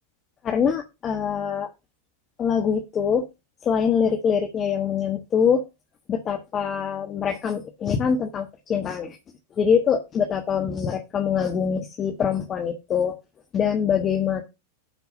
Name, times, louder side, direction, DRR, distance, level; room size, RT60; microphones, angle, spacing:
voice 1, 0.4-1.7 2.4-3.3 3.6-5.6 6.1-9.2 9.6-13.2 13.5-14.4, left 7 dB, 25° left, 4 dB, 1.3 m, -24 dB
11.0 x 4.6 x 5.6 m, 0.25 s
figure-of-eight pair, 90°, 0 cm